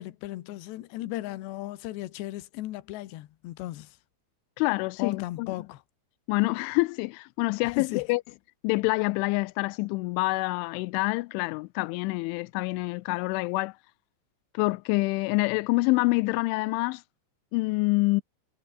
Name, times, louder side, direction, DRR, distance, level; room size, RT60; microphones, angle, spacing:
voice 1, 0.0-4.0 5.0-5.8 7.8-8.0, left 16 dB, 70° left, 3.3 m, -36 dB
voice 2, 4.6-5.5 6.3-8.2 8.6-13.8 14.5-17.0 17.5-18.2, left 24 dB, 90° left, 3.0 m, -26 dB
omnidirectional pair, 5.4 m